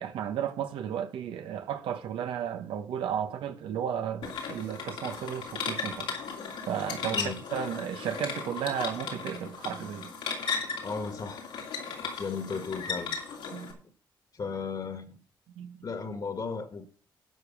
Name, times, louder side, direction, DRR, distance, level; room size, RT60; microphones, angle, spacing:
voice 1, 0.0-6.2 6.7-10.2 13.5-13.8 15.5-15.9, right 9 dB, 85° right, 1.1 m, -34 dB
sound 1, 4.2-13.7, left 5 dB, 90° left, 2.8 m, -36 dB
voice 2, 10.8-11.4 12.2-13.1 14.3-15.2 15.8-16.9, left 5 dB, 50° left, 1.7 m, -35 dB
11.0 x 5.3 x 7.3 m
cardioid pair, 65°, 8 cm